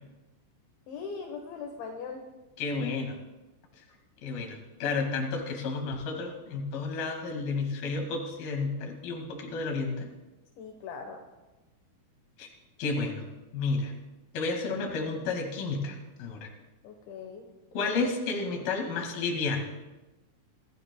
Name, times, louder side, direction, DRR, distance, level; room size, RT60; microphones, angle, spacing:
voice 1, 0.9-2.2 10.6-11.2 16.8-17.4, left 5 dB, 70° left, 2 dB, 3.3 m, -40 dB
voice 2, 2.6-3.2 4.2-10.1 12.4-12.5 12.8-13.2 13.5-13.9 14.3-16.5 17.7-19.6, left 4 dB, 55° left, 2 dB, 3.4 m, -31 dB
25.5 x 15.5 x 2.3 m, 1.1 s
omnidirectional pair, 5.9 m